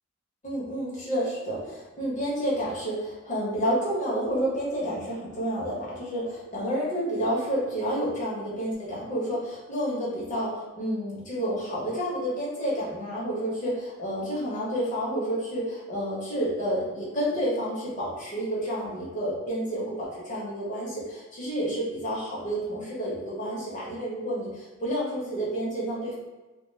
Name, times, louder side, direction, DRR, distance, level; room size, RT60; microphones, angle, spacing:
voice 1, 0.4-26.1, equal, 35° left, -6 dB, 0.8 m, -30 dB
2.2 x 2.0 x 3.0 m, 1.2 s
head